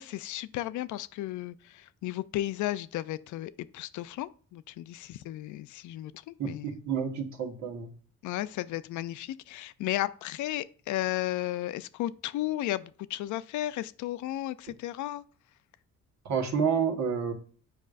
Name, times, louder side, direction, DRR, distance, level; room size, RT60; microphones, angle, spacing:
voice 1, 0.0-6.7 8.2-15.2, left 14 dB, 75° left, 0.5 m, -34 dB
voice 2, 6.4-7.9 16.2-17.3, right 6 dB, 65° right, 1.4 m, -29 dB
7.5 x 5.1 x 2.5 m
cardioid pair, 90°, 30 cm